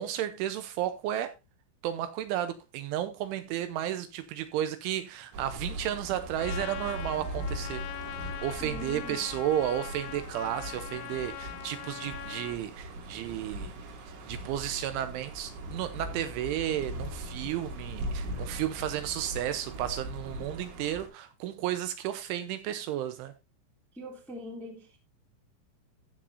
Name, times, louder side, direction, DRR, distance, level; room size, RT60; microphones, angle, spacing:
voice 1, 0.0-1.3 1.8-7.8 8.2-13.7 14.3-23.3, right 11 dB, 80° right, 3.0 m, -33 dB
sound 1, 5.3-21.1, equal, 65° right, 4.6 m, -40 dB
Trumpet, 6.4-12.6, left 14 dB, 85° left, 3.4 m, -42 dB
voice 2, 8.6-9.2 23.9-25.0, left 1 dB, ahead, 1.0 m, -42 dB
15.5 x 7.6 x 2.7 m
omnidirectional pair, 6.0 m